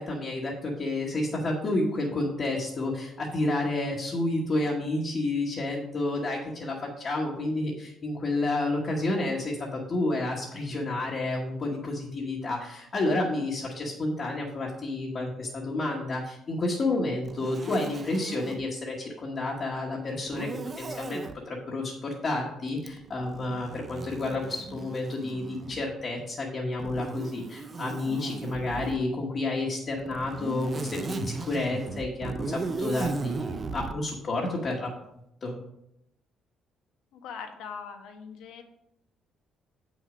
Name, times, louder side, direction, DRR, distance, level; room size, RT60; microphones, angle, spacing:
voice 1, 0.0-20.5 20.7-34.9 35.4-35.5, left 2 dB, 30° left, -3 dB, 1.3 m, -30 dB
Zipper (clothing), 17.2-18.7 20.3-21.4 22.8-26.0 26.8-29.1 30.0-34.0, right 4 dB, 25° right, 0.4 m, -37 dB
voice 2, 37.1-38.6, left 6 dB, 90° left, 5 dB, 1.3 m, -41 dB
7.8 x 6.3 x 5.0 m, 0.80 s
cardioid pair, 170°, 0 cm